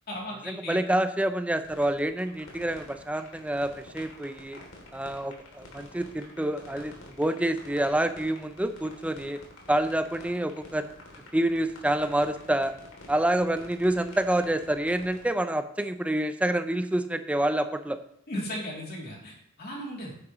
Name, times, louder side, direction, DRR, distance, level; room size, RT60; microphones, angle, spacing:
voice 1, 0.1-0.8 18.3-20.1, equal, 50° left, -3 dB, 2.9 m, -36 dB
voice 2, 0.7-4.6 4.9-9.4 9.7-10.9 11.3-12.7 13.1-18.0, right 1 dB, 5° right, 10 dB, 0.5 m, -27 dB
sound 1, 1.6-15.3, left 2 dB, 90° left, 2.9 m, -48 dB
9.6 x 9.6 x 3.1 m, 0.72 s
head